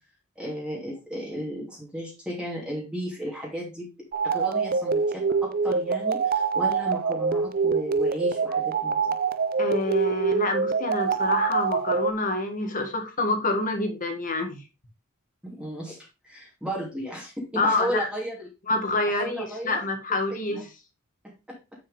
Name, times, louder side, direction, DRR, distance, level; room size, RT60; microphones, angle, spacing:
voice 1, 0.3-3.9 4.2-9.2 15.4-16.0 16.2-18.5 19.1-19.8 20.3-20.6 21.2-21.6, equal, 5° right, -4 dB, 3.0 m, -34 dB
sound 1, 4.1-12.1, right 5 dB, 45° right, 0.5 m, -25 dB
voice 2, 9.6-14.6 17.5-18.1 18.7-20.6, left 2 dB, 40° left, 5 dB, 1.7 m, -27 dB
8.2 x 6.1 x 3.5 m, 0.27 s
head